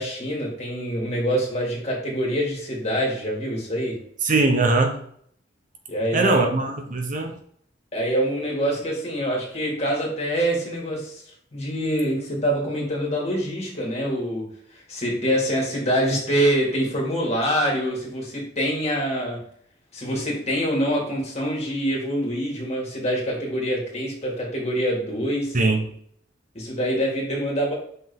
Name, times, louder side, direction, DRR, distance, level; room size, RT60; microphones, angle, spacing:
voice 1, 0.0-4.0 5.9-6.5 7.9-11.2 11.5-14.5 14.7-19.4 19.9-25.6 26.5-27.7, equal, 35° left, -3 dB, 2.3 m, -25 dB
voice 2, 4.2-5.0 6.1-7.4 25.5-25.8, right 3 dB, 40° right, 3 dB, 0.8 m, -21 dB
5.5 x 4.0 x 5.4 m, 0.64 s
head